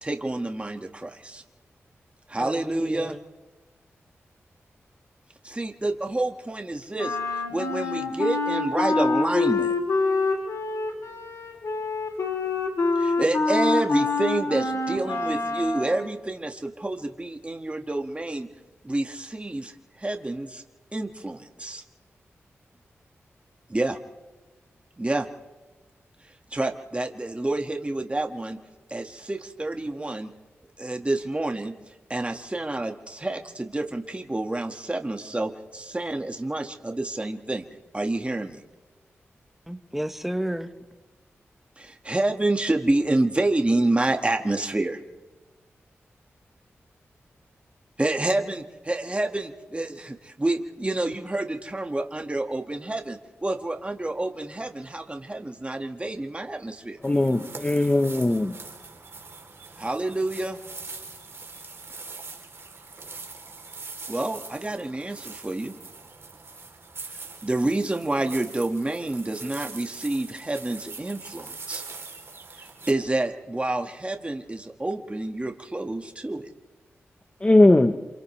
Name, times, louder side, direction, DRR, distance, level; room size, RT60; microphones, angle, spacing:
voice 1, 0.0-1.4 2.3-3.2 5.4-9.7 13.0-18.5 18.8-20.6 20.9-21.8 23.7-24.0 25.0-25.3 26.5-28.6 28.9-30.3 30.8-31.7 32.1-37.7 37.9-38.6 41.8-45.0 48.0-57.0 59.8-60.6 64.1-65.7 67.4-71.8 72.9-76.5, right 2 dB, 25° right, 1.9 m, -28 dB
voice 2, 2.4-3.2 39.7-40.9, right 1 dB, 5° right, 1.5 m, -32 dB
Wind instrument woodwind instrument, 7.0-16.0, left 3 dB, 75° left, 3.5 m, -26 dB
voice 3, 57.0-58.6 77.4-77.9, left 2 dB, 25° left, 1.1 m, -19 dB
sound 1, 57.0-72.9, right 4 dB, 55° right, 3.5 m, -42 dB
29.5 x 27.0 x 3.4 m
cardioid pair, 45°, 5 cm